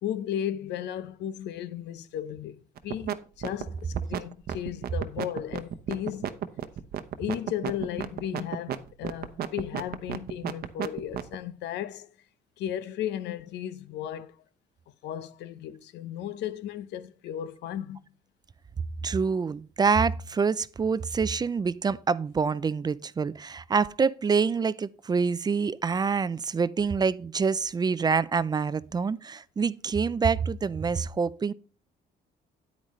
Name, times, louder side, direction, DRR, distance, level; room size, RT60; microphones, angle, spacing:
voice 1, 0.0-6.4 7.2-12.2 12.6-14.4 15.0-18.0, left 10 dB, 85° left, 0.8 m, -35 dB
sound 1, 2.8-3.1 3.4-11.3, right 10 dB, 60° right, 0.8 m, -32 dB
voice 2, 19.0-31.5, right 5 dB, 25° right, 0.4 m, -26 dB
9.4 x 8.9 x 3.1 m
cardioid pair, 120°, 17 cm